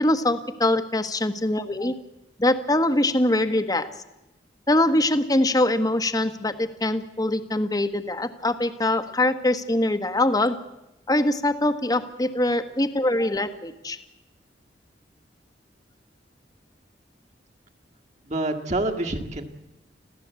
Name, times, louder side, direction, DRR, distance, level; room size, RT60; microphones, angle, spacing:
voice 1, 0.0-1.9 2.4-3.9 4.7-10.6 11.1-14.0, left 1 dB, 20° left, 9 dB, 1.3 m, -23 dB
voice 2, 18.2-19.4, right 2 dB, 40° right, 5 dB, 1.9 m, -27 dB
26.5 x 15.5 x 8.3 m, 0.92 s
head